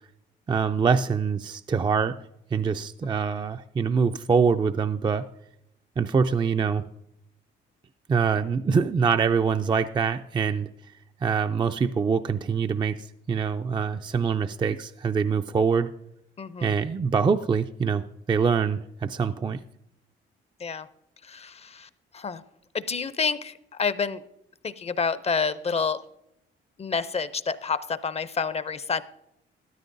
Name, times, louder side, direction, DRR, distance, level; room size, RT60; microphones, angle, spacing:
voice 1, 0.5-2.2 2.5-5.3 6.0-6.9 8.1-10.7 11.2-15.9 16.6-19.6, right 6 dB, 25° right, 8 dB, 0.3 m, -24 dB
voice 2, 16.4-16.8 20.6-20.9 21.2-22.4 22.7-24.2 24.6-26.0 26.8-29.0, left 5 dB, 30° left, 14 dB, 0.5 m, -29 dB
13.5 x 12.5 x 2.6 m, 0.81 s
cardioid pair, 90°, 20 cm